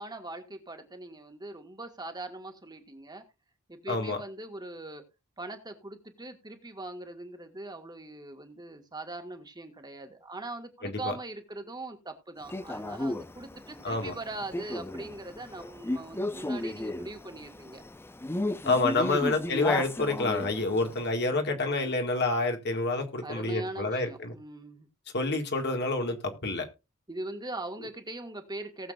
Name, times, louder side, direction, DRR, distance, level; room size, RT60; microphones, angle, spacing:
voice 1, 0.0-3.2 3.7-5.0 5.4-17.8 19.0-19.5 23.2-24.9 26.3-26.5 27.1-28.9, right 2 dB, 20° right, 1.8 m, -41 dB
voice 2, 3.9-4.2 10.8-11.1 13.8-14.1 18.6-24.3 25.1-26.7, left 2 dB, 50° left, 2.1 m, -28 dB
Male speech man speaking, 12.5-21.0, left 1 dB, 10° left, 0.5 m, -34 dB
19.0 x 7.4 x 2.5 m
head